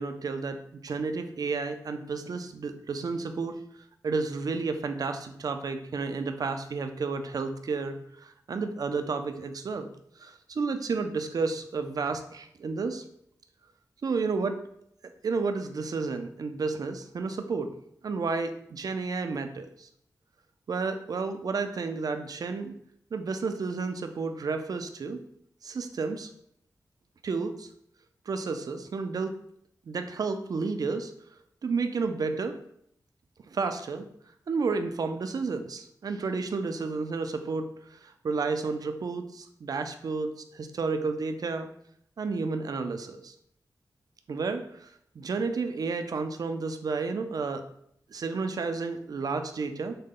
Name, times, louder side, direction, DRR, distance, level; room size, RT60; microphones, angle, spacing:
voice 1, 0.0-3.6 4.0-9.9 10.2-13.0 14.0-14.6 15.2-17.7 18.0-19.9 20.7-22.7 23.1-25.2 25.6-26.3 27.2-27.7 28.3-29.4 29.9-31.1 31.6-32.5 33.5-34.1 34.5-41.7 42.2-43.3 44.3-44.9 45.2-47.6 48.1-50.0, right 4 dB, 65° right, 7 dB, 0.5 m, -31 dB
6.5 x 2.2 x 3.8 m, 0.72 s
wide cardioid pair, 85°, 7 cm